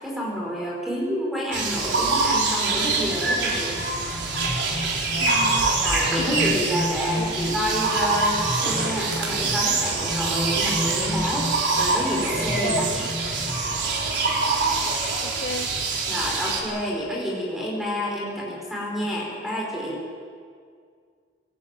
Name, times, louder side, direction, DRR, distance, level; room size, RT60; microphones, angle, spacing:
voice 1, 0.0-3.8 5.8-13.0 16.1-20.0, equal, ahead, -3 dB, 5.1 m, -28 dB
sound 1, 1.5-16.6, right 3 dB, 75° right, 4.3 m, -25 dB
sound 2, 3.7-14.2, left 1 dB, 15° right, 2.2 m, -33 dB
voice 2, 5.2-5.7 6.3-6.4 7.1-7.4 12.6-12.9 15.2-15.7, left 3 dB, 55° left, 6 dB, 1.1 m, -32 dB
22.5 x 17.5 x 9.2 m, 2.1 s
head